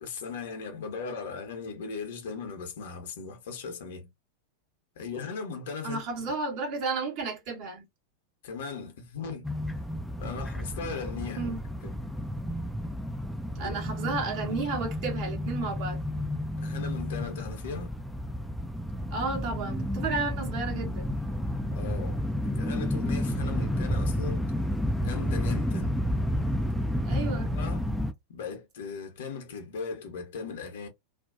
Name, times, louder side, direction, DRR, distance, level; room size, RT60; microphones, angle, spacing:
voice 1, 0.0-4.1 5.0-6.0 8.4-9.5 10.2-11.6 11.8-11.9 13.6-14.2 16.6-17.9 21.7-24.5 25.0-26.0 27.1-27.9 28.3-30.9, left 5 dB, 60° left, 0.8 m, -38 dB
voice 2, 5.8-7.9 11.4-11.6 13.5-16.0 19.1-21.1 27.0-27.5, right 4 dB, 45° right, 1.0 m, -32 dB
sound 1, 9.4-28.1, left 1 dB, ahead, 0.4 m, -31 dB
2.5 x 2.2 x 2.4 m
figure-of-eight pair, 90°, 0 cm